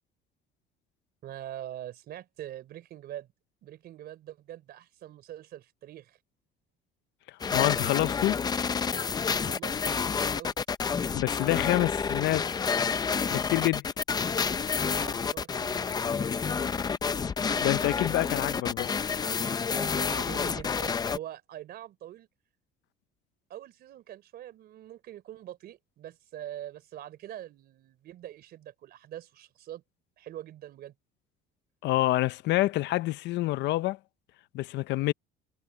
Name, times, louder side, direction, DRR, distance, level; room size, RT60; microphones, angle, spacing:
voice 1, 1.2-3.3 3.6-6.2 9.3-10.5 14.8-16.3 19.7-22.3 23.5-29.8 30.2-30.9, right 12 dB, 55° right, 3.7 m, -44 dB
voice 2, 7.3-8.4 11.1-12.6 13.3-13.9 17.6-18.9 31.8-34.0 34.5-35.1, left 17 dB, 65° left, 0.6 m, -27 dB
sound 1, 7.4-21.2, left 6 dB, 20° left, 0.6 m, -29 dB
cardioid pair, 150°, 20 cm